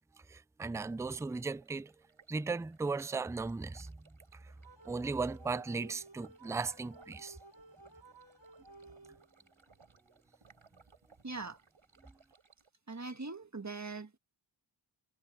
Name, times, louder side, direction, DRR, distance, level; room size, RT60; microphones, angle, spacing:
voice 1, 0.3-1.9 2.3-4.0 4.3-4.5 4.8-7.4, right 4 dB, 5° right, 0.3 m, -37 dB
Stream, 0.7-12.7, right 5 dB, 80° right, 6.6 m, -66 dB
sound 1, 4.6-9.5, right 2 dB, 65° right, 3.8 m, -56 dB
voice 2, 11.2-11.6 12.9-14.2, right 3 dB, 35° right, 1.7 m, -41 dB
cardioid pair, 40°, 47 cm